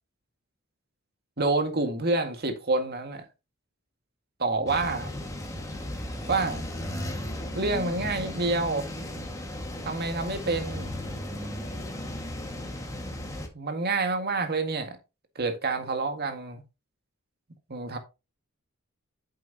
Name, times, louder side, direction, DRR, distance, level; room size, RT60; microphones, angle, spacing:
voice 1, 1.4-3.2 4.4-5.1 6.3-6.6 7.6-8.9 9.8-10.9 13.5-15.0 15.4-16.6 17.7-18.0, right 3 dB, 50° right, 1.9 m, -28 dB
sound 1, 4.7-13.5, left 1 dB, 15° left, 1.8 m, -35 dB
9.0 x 7.6 x 2.9 m
head